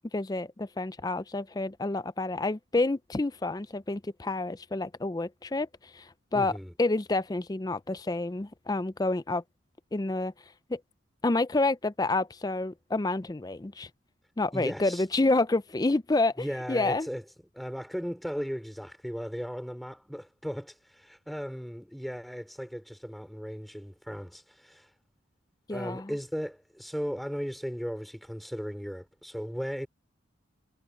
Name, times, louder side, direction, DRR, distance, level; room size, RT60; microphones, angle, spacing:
voice 1, 0.1-9.4 9.9-10.3 10.7-10.8 11.2-13.9 14.4-17.1 25.7-26.1, left 2 dB, 20° left, 0.4 m, -29 dB
voice 2, 6.3-6.7 14.5-15.1 16.4-17.2 17.5-24.9 25.7-29.9, equal, ahead, 4.1 m, -36 dB
head